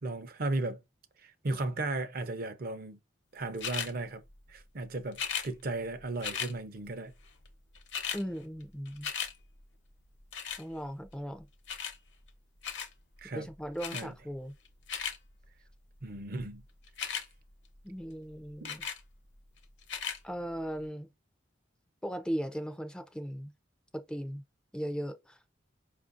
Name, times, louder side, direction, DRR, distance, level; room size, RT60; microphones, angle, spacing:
voice 1, 0.0-0.8 1.2-3.0 3.3-4.2 4.5-7.1 13.2-13.5 13.9-14.1 16.0-16.6 18.6-18.7, right 2 dB, 50° right, 0.6 m, -35 dB
sound 1, 3.6-3.9 5.1-5.5 6.2-6.5 7.5-7.6 7.7-8.2 8.6-9.3 10.3-10.6 11.7-12.0 12.6-12.9 13.8-14.1 14.7-15.2 16.9-17.3 18.6-19.0 19.8-20.2 20.8-20.9, left 7 dB, 65° left, 0.7 m, -36 dB
voice 2, 8.1-9.1 10.6-11.5 13.3-14.5 17.8-18.8 20.2-21.1 22.0-23.5 23.9-24.4 24.7-25.4, equal, 5° left, 0.4 m, -37 dB
5.3 x 2.5 x 2.5 m
head